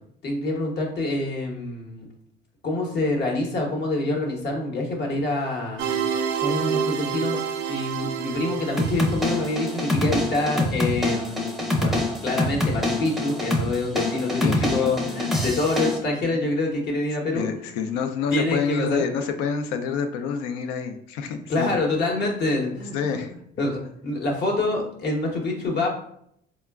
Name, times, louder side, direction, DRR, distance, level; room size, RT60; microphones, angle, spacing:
voice 1, 0.2-2.1 2.6-5.9 6.4-17.5 18.3-19.0 21.5-23.2 23.6-25.9, left 2 dB, 55° left, 0 dB, 0.9 m, -26 dB
sound 1, 5.8-9.9, right 7 dB, 65° right, 0.4 m, -28 dB
sound 2, 8.8-16.0, left 1 dB, ahead, 0.5 m, -25 dB
voice 2, 14.4-14.9 17.3-21.7 22.9-23.3, left 6 dB, 85° left, 7 dB, 0.4 m, -28 dB
3.8 x 2.1 x 2.2 m, 0.69 s
supercardioid pair, 75°, 21 cm